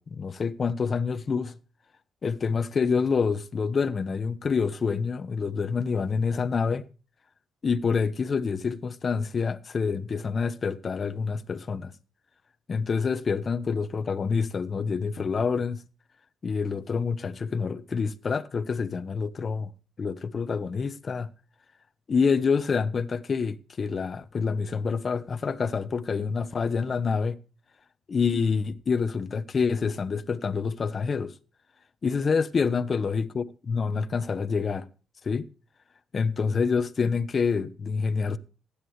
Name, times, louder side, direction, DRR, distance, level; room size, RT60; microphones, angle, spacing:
voice 1, 0.0-1.6 2.2-6.8 7.6-11.9 12.7-15.8 16.4-19.7 20.0-21.3 22.1-27.4 28.1-31.3 32.0-34.8 35.2-35.5 36.1-38.4, left 5 dB, 40° left, 1.1 m, -27 dB
16.0 x 9.9 x 3.2 m
cardioid pair, 90°, 0 cm